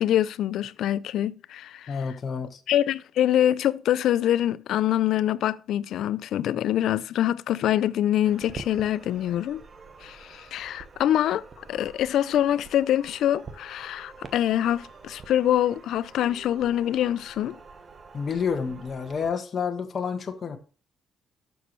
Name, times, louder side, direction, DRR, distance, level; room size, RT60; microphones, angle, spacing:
voice 1, 0.0-1.9 2.7-9.6 10.0-17.6, left 11 dB, 80° left, 0.5 m, -25 dB
voice 2, 1.9-2.6 18.1-20.6, left 6 dB, 45° left, 1.6 m, -29 dB
sound 1, 8.2-19.3, right 4 dB, 40° right, 1.3 m, -47 dB
11.0 x 7.0 x 3.2 m
cardioid pair, 90°, 0 cm